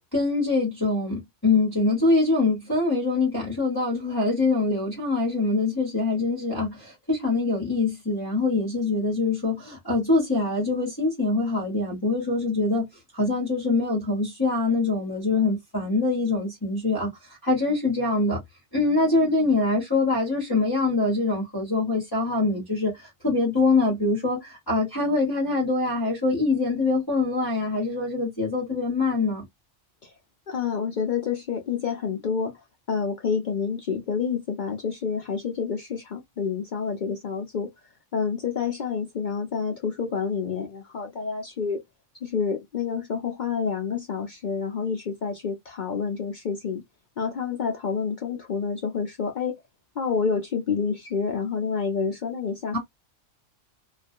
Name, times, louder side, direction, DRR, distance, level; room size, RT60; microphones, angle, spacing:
voice 1, 0.0-12.8 13.1-18.4 18.7-29.4 52.7-52.8, left 3 dB, 20° left, 1.0 m, -24 dB
voice 2, 19.0-19.3 30.0-30.1 30.5-37.7 38.1-41.8 42.2-46.8 47.2-49.6 50.0-52.8, left 6 dB, 55° left, 0.5 m, -28 dB
2.4 x 2.2 x 2.5 m
omnidirectional pair, 1.2 m